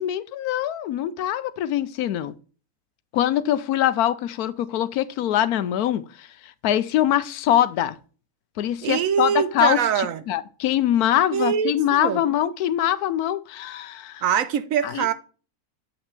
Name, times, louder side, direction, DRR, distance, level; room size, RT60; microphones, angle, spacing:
voice 1, 0.0-2.3 3.1-8.0 8.6-14.2 14.8-15.1, left 11 dB, 80° left, 1.1 m, -23 dB
voice 2, 8.8-10.2 11.3-12.2 14.2-15.1, right 8 dB, 70° right, 1.0 m, -23 dB
7.6 x 6.0 x 3.3 m
omnidirectional pair, 1.6 m